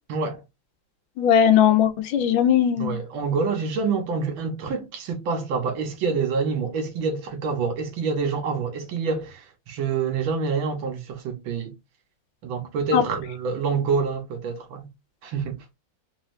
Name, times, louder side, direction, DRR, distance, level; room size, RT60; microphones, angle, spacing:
voice 1, 0.1-0.4 2.8-11.7 12.4-14.9 15.2-15.6, right 5 dB, 80° right, 1.8 m, -27 dB
voice 2, 1.2-3.0 12.9-13.0, left 9 dB, 80° left, 1.4 m, -19 dB
4.0 x 2.6 x 3.0 m
omnidirectional pair, 2.2 m